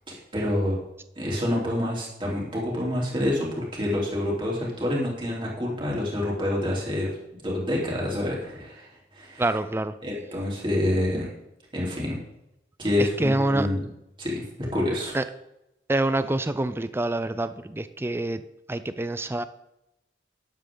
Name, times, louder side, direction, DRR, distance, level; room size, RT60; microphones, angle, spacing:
voice 1, 0.1-0.8 1.2-7.1 7.4-9.4 10.0-11.3 11.7-12.2 12.8-13.8 14.2-14.4 14.7-15.2, left 1 dB, 30° right, -4 dB, 3.5 m, -27 dB
voice 2, 9.4-9.9 13.0-13.7 15.1-15.2 15.9-18.4 18.7-19.4, right 2 dB, 15° right, 12 dB, 0.4 m, -26 dB
12.0 x 10.5 x 3.9 m, 0.90 s
head